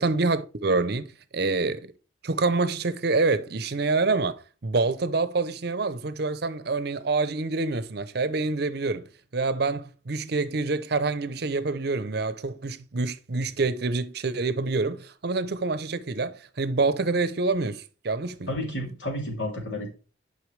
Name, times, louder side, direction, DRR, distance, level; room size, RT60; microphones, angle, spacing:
voice 1, 0.0-1.9 2.2-9.1 9.3-18.5, right 3 dB, 60° right, 0.7 m, -26 dB
voice 2, 18.5-19.9, left 1 dB, 75° left, 3.1 m, -31 dB
9.6 x 5.6 x 3.3 m
head